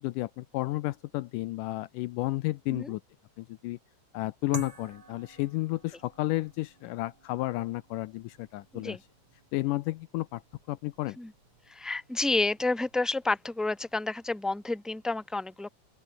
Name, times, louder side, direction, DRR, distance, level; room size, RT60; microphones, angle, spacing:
voice 1, 0.0-3.0 3.4-3.8 4.1-9.0 9.5-10.4 10.7-11.2, left 18 dB, 80° left, 2.0 m, -32 dB
sound 1, 4.5-13.4, right 4 dB, 35° right, 4.4 m, -50 dB
voice 2, 11.7-15.7, left 2 dB, ahead, 2.4 m, -30 dB
open air
omnidirectional pair, 4.0 m